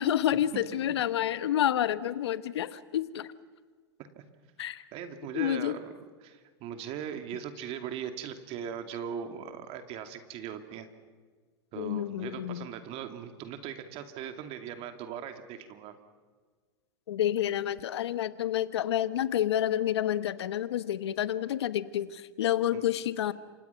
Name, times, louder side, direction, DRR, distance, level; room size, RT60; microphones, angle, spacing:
voice 1, 0.0-3.3 4.6-4.8 5.3-5.7 11.8-12.7 17.1-23.3, left 11 dB, 75° left, 14 dB, 1.2 m, -29 dB
voice 2, 4.9-10.9 11.7-16.0 22.7-22.8, right 8 dB, 45° right, 7 dB, 2.6 m, -39 dB
28.5 x 26.0 x 5.9 m, 1.5 s
hypercardioid pair, 110°, 14 cm